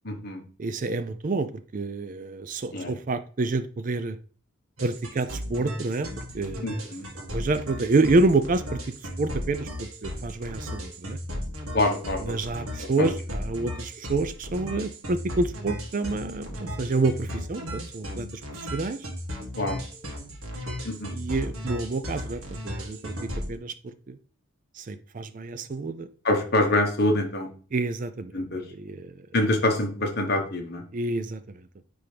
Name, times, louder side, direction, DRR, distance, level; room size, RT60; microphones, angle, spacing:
voice 1, 0.0-0.4 2.7-2.9 6.6-7.1 11.7-12.4 13.0-13.1 19.6-19.8 20.8-21.1 26.2-27.5 28.3-28.6 29.3-30.8, left 1 dB, 45° left, 3 dB, 1.3 m, -25 dB
voice 2, 0.6-4.2 4.8-6.8 7.3-8.8 9.2-11.2 12.2-19.0 21.1-24.2 24.7-26.1 27.7-29.1 30.9-31.6, right 3 dB, 35° right, 11 dB, 0.4 m, -28 dB
sound 1, 4.8-23.5, equal, 75° right, 1.8 m, -35 dB
9.8 x 3.5 x 3.4 m, 0.41 s
head